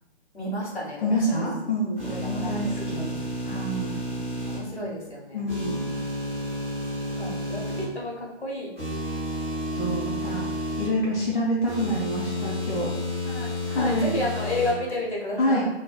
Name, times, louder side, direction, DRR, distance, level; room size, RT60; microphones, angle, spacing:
voice 1, 0.3-1.5 2.0-2.5 3.3-3.6 4.4-5.4 7.2-8.7 13.2-15.7, left 1 dB, 75° left, -2 dB, 1.2 m, -32 dB
voice 2, 1.0-3.1 3.4-4.0 5.3-5.8 9.8-10.4 10.8-12.9 13.6-14.1 15.4-15.7, equal, 50° left, -4 dB, 0.5 m, -27 dB
sound 1, 2.0-4.6 5.5-7.8 8.8-10.9 11.6-14.7, left 1 dB, 15° right, 0.5 m, -31 dB
3.4 x 2.3 x 2.2 m, 0.97 s
figure-of-eight pair, 145°, 33 cm